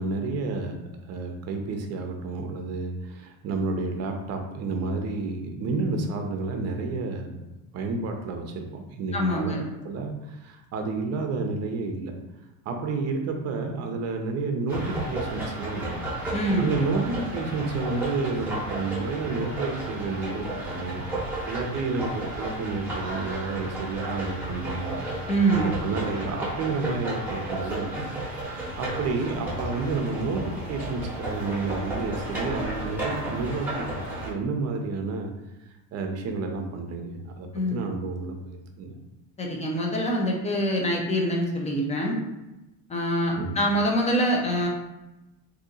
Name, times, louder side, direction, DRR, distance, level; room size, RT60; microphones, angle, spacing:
voice 1, 0.0-7.4 7.7-9.5 9.8-12.1 12.7-16.0 16.6-21.0 21.5-25.0 25.5-28.2 28.5-35.3 35.9-38.9 43.4-43.6, right 3 dB, 45° right, 4 dB, 0.7 m, -30 dB
voice 2, 9.1-9.6 16.3-16.7 25.3-25.7 37.5-37.8 39.4-42.2 42.9-44.7, right 1 dB, 20° left, 0 dB, 0.7 m, -25 dB
sound 1, 14.7-34.3, right 1 dB, 5° right, 1.1 m, -33 dB
2.7 x 2.6 x 3.8 m, 0.97 s
supercardioid pair, 120°, 37 cm